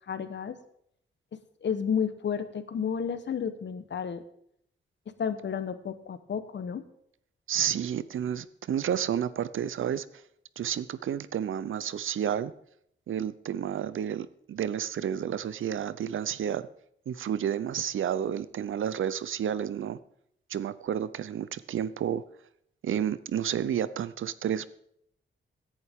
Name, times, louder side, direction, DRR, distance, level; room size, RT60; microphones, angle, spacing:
voice 1, 0.1-0.6 1.6-4.2 5.2-6.8, left 7 dB, 60° left, 12 dB, 1.0 m, -31 dB
voice 2, 7.5-10.1 10.6-12.5 13.1-16.7 17.1-20.0 20.5-22.2 22.8-24.7, right 9 dB, 75° right, 16 dB, 0.6 m, -31 dB
17.0 x 11.0 x 3.6 m, 0.70 s
wide cardioid pair, 120°, 21 cm